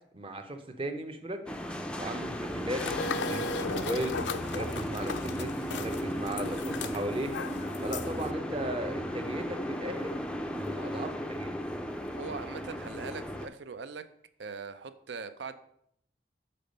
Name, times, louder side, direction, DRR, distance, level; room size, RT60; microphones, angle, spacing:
voice 1, 0.1-1.4 2.0-2.8 3.3-4.2 4.5-7.3 7.8-10.1 10.7-11.6, right 1 dB, 30° right, 6 dB, 0.7 m, -36 dB
sound 1, 1.5-13.5, equal, 5° left, 0.4 m, -35 dB
sound 2, 2.8-8.3, left 4 dB, 75° left, 0.4 m, -37 dB
voice 2, 12.1-14.1 14.4-15.5, right 5 dB, 75° right, 12 dB, 0.5 m, -41 dB
6.8 x 4.3 x 5.3 m, 0.70 s
head